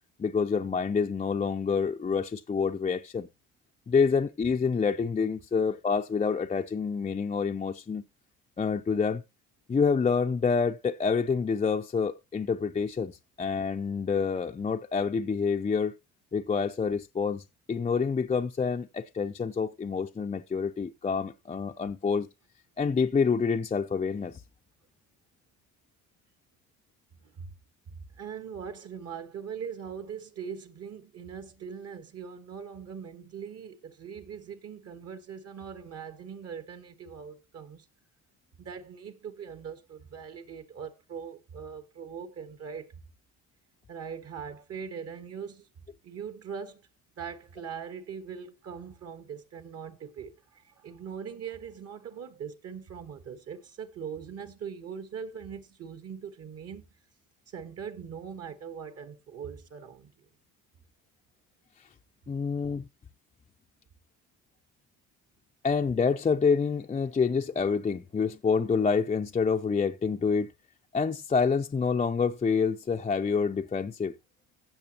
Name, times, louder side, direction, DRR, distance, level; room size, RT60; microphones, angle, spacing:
voice 1, 0.2-3.3 3.9-8.0 8.6-9.2 9.7-15.9 16.3-22.3 22.8-24.4 62.3-62.9 65.6-70.5 70.9-74.1, left 5 dB, 20° left, 0.6 m, -27 dB
voice 2, 27.2-27.5 27.9-37.9 38.6-43.0 43.9-45.7 46.0-46.9 47.2-56.9 57.5-60.2, right 7 dB, 50° right, 1.6 m, -41 dB
15.0 x 6.1 x 3.0 m
cardioid pair, 110°, 33 cm